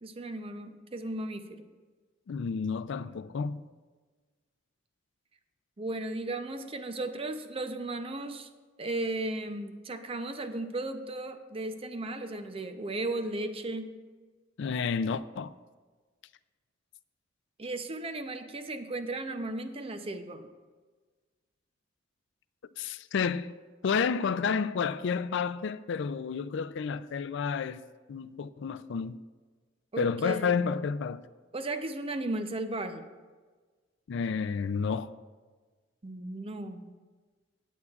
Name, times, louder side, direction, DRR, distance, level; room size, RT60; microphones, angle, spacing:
voice 1, 0.0-1.7 5.8-8.5 8.8-13.9 17.6-20.5 29.9-30.7 31.5-33.0 36.0-36.9, right 2 dB, 30° right, 0.6 m, -35 dB
voice 2, 2.3-3.7 14.6-15.5 22.8-23.5 23.8-27.8 28.1-29.2 30.0-31.2 34.1-35.1, left 6 dB, 65° left, 0.4 m, -30 dB
18.0 x 8.2 x 2.4 m
head